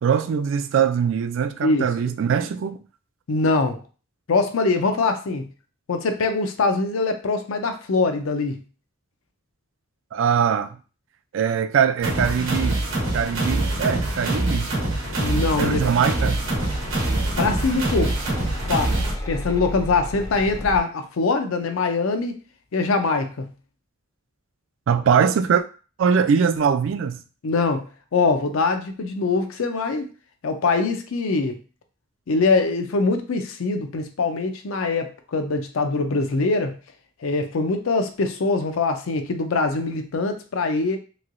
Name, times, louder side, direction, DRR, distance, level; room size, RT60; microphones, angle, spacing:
voice 1, 0.0-2.8 10.1-10.7 11.3-12.8 13.1-14.7 15.6-16.4 24.9-25.6 26.0-27.2, right 7 dB, 65° right, 0.3 m, -21 dB
voice 2, 3.3-3.8 4.3-5.5 5.9-8.6 15.2-15.8 17.4-18.2 18.7-19.0 19.3-22.4 22.7-23.5 27.4-27.9 28.1-30.1 30.4-31.6 32.3-36.7 37.2-41.0, left 3 dB, 90° left, 0.5 m, -23 dB
sound 1, 12.0-19.1, right 1 dB, 85° right, 1.0 m, -24 dB
sound 2, 13.8-20.8, left 1 dB, 15° left, 0.4 m, -35 dB
3.1 x 2.7 x 2.5 m
head